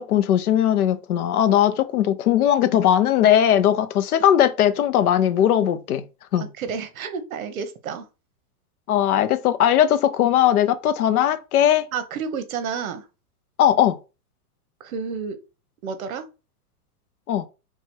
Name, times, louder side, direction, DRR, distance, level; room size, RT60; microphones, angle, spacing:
voice 1, 0.0-6.0 6.3-6.4 8.9-11.9 13.6-14.0 17.3-17.5, left 10 dB, 70° left, 0.7 m, -19 dB
voice 2, 6.4-8.1 11.9-13.1 14.8-15.4 15.8-16.3, right 6 dB, 60° right, 1.0 m, -30 dB
3.4 x 3.0 x 4.4 m
supercardioid pair, 175°, 46 cm